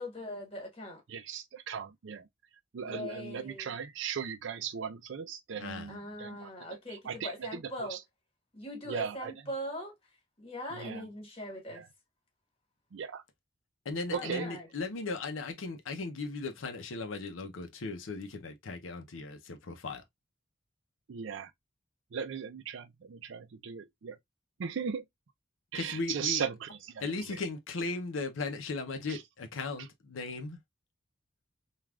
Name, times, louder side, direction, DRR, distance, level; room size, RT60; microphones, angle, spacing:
voice 1, 0.0-1.0 2.8-3.7 5.9-8.0 8.5-9.9 10.4-11.8 14.1-14.7 27.1-27.3, left 1 dB, 30° left, 1.3 m, -41 dB
voice 2, 1.1-2.3 2.7-8.0 8.8-9.3 10.7-11.1 11.7-11.9 12.9-13.2 14.1-14.5 21.1-21.5 22.1-24.2 24.6-25.0 25.7-27.4 29.1-29.2, right 7 dB, 70° right, 0.4 m, -38 dB
voice 3, 5.6-5.9 13.8-20.0 25.7-26.4 27.0-30.6, left 3 dB, 80° left, 0.6 m, -37 dB
3.3 x 2.3 x 2.3 m
head